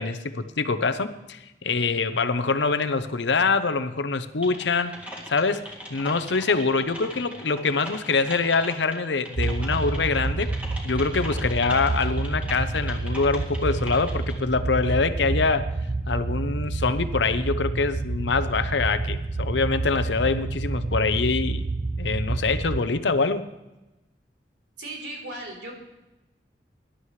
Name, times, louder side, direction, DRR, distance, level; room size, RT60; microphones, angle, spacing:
voice 1, 0.0-4.9 5.3-5.6 5.9-10.5 10.8-15.7 16.1-21.6 22.0-23.5, left 4 dB, 90° left, 11 dB, 0.8 m, -24 dB
Typing, 4.4-14.3, equal, 10° right, 2.1 m, -40 dB
sound 1, 9.4-22.8, right 3 dB, 30° right, 0.4 m, -29 dB
voice 2, 24.8-25.8, right 1 dB, 80° right, 0 dB, 3.9 m, -36 dB
21.5 x 11.5 x 3.3 m, 1.0 s
head